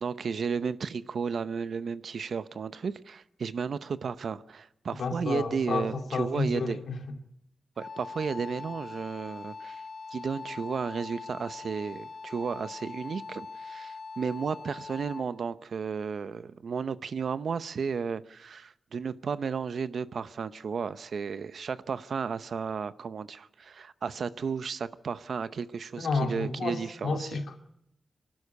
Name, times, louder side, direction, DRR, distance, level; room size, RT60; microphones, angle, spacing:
voice 1, 0.0-6.8 7.8-9.8 10.1-27.4, right 6 dB, 70° right, 0.7 m, -33 dB
voice 2, 5.0-7.0 26.0-27.6, left 3 dB, 90° left, 2.4 m, -31 dB
Wind instrument woodwind instrument, 7.8-15.4, left 4 dB, 30° left, 4.1 m, -42 dB
24.5 x 12.0 x 9.7 m
wide cardioid pair, 130°, 0 cm